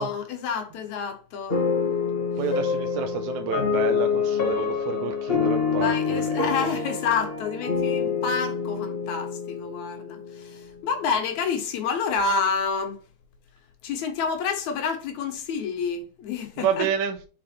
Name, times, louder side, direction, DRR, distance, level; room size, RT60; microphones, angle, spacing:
voice 1, 0.0-1.7 5.7-13.0 13.8-16.9, left 5 dB, 75° left, 2.5 m, -28 dB
sound 1, 1.5-10.7, left 6 dB, 45° left, 0.7 m, -26 dB
voice 2, 2.4-6.2 16.6-17.2, right 7 dB, 80° right, 2.1 m, -29 dB
5.6 x 5.1 x 4.3 m
omnidirectional pair, 3.3 m